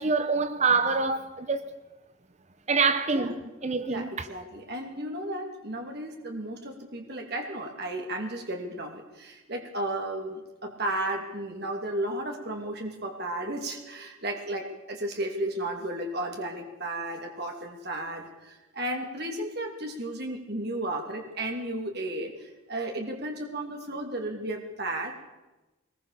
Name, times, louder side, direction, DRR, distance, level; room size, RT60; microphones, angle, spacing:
voice 1, 0.0-1.7 2.7-4.3, right 4 dB, 35° right, 0.8 m, -26 dB
voice 2, 3.8-25.1, right 1 dB, 50° right, 2.8 m, -34 dB
21.5 x 20.5 x 6.9 m
head